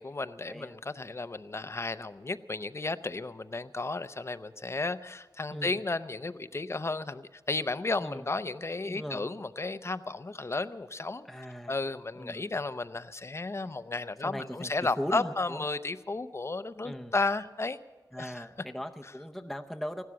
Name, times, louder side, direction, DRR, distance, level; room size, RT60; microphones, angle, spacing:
voice 1, 0.0-17.8 18.2-18.5, left 3 dB, 40° left, 13 dB, 0.6 m, -33 dB
voice 2, 8.9-9.3 11.3-11.8 12.2-12.6 14.2-14.7 15.0-15.6 16.8-17.1 18.1-20.0, equal, ahead, 3 dB, 0.7 m, -38 dB
16.0 x 12.5 x 7.1 m, 1.3 s
wide cardioid pair, 65°, 7 cm